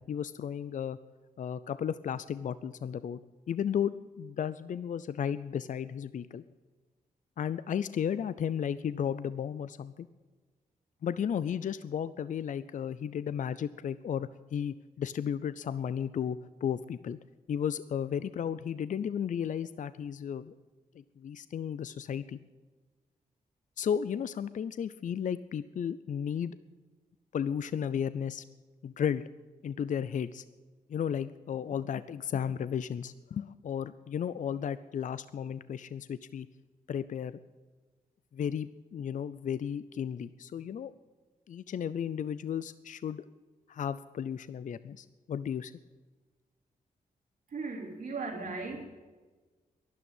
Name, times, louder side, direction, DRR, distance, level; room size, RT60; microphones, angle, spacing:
voice 1, 0.1-1.0 1.4-3.2 3.5-6.4 7.4-10.1 11.0-17.2 17.5-20.5 20.9-22.4 23.8-26.5 27.3-28.4 28.8-29.3 29.6-30.4 30.9-36.5 36.9-37.4 38.3-40.9 41.5-43.2 43.7-45.7, left 8 dB, 60° left, 15 dB, 0.5 m, -34 dB
voice 2, 47.5-48.8, right 3 dB, 70° right, -3 dB, 3.8 m, -37 dB
12.0 x 11.0 x 9.2 m, 1.3 s
cardioid pair, 70°, 15 cm